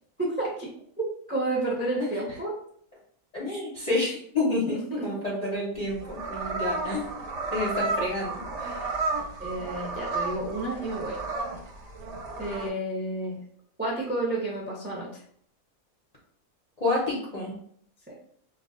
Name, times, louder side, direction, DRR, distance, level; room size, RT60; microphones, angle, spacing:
voice 1, 0.2-0.7 1.3-2.5 4.7-5.0 9.4-11.2 12.4-13.4 13.8-15.1 18.1-18.2, right 2 dB, 15° right, -4 dB, 0.4 m, -30 dB
voice 2, 3.3-4.8 5.0-7.2 7.5-8.9 16.8-17.5, left 2 dB, 40° left, -6 dB, 0.5 m, -29 dB
sound 1, 5.8-12.7, right 3 dB, 65° right, 0.8 m, -32 dB
2.3 x 2.2 x 3.6 m, 0.63 s
omnidirectional pair, 1.5 m